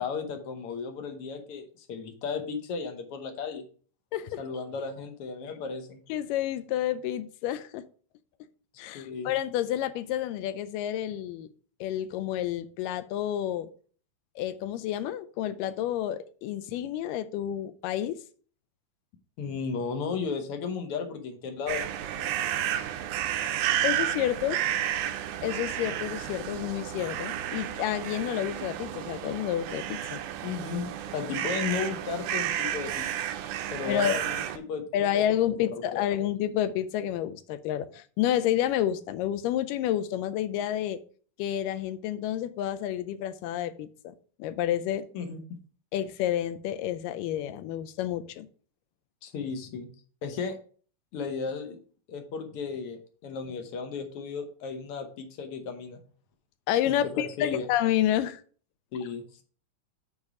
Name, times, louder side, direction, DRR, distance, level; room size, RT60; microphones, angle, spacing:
voice 1, 0.0-3.6 4.4-6.0 8.9-9.3 19.4-22.8 30.4-33.2 33.7-34.9 35.1-35.2 35.9-36.0 45.1-45.4 49.2-49.9 50.2-50.6 51.1-51.8 52.1-56.0 56.9-57.7 58.9-59.4, left 5 dB, 70° left, 6 dB, 1.4 m, -35 dB
voice 2, 6.1-7.8 8.8-11.5 11.8-13.7 14.4-18.2 23.8-24.6 25.4-30.2 33.9-34.2 34.9-41.0 41.4-44.1 44.4-45.1 45.9-48.5 56.7-58.4, left 11 dB, 90° left, 13 dB, 2.3 m, -29 dB
sound 1, 21.7-34.6, right 11 dB, 80° right, 2.0 m, -32 dB
8.8 x 4.1 x 4.8 m, 0.42 s
omnidirectional pair, 3.8 m